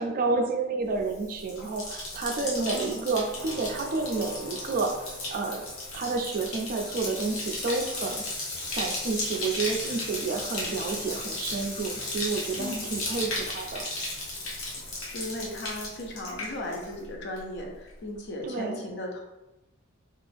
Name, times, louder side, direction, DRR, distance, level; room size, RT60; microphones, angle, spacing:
voice 1, 0.0-5.7 5.9-8.2 8.7-13.9 18.4-18.8, right 3 dB, 40° right, 3 dB, 0.3 m, -30 dB
Bathtub (filling or washing), 1.0-17.1 17.4-17.9, left 2 dB, 80° left, 0.8 m, -35 dB
voice 2, 2.6-3.1 12.6-12.8 15.1-19.2, left 1 dB, 55° left, 1 dB, 0.6 m, -36 dB
sound 1, 3.4-7.1, left 1 dB, 10° left, 0.6 m, -46 dB
2.6 x 2.4 x 3.3 m, 0.98 s
head